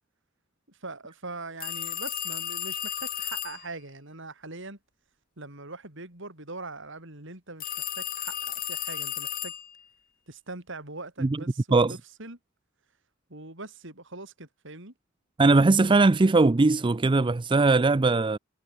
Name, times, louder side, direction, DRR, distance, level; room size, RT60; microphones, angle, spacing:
voice 1, 0.7-4.8 5.4-9.5 10.3-12.4 13.3-14.9, right 3 dB, 65° right, 6.4 m, -42 dB
sound 1, 1.6-3.7 7.6-9.8, left 10 dB, 45° left, 4.4 m, -34 dB
voice 2, 15.4-18.4, right 3 dB, 25° right, 0.5 m, -20 dB
head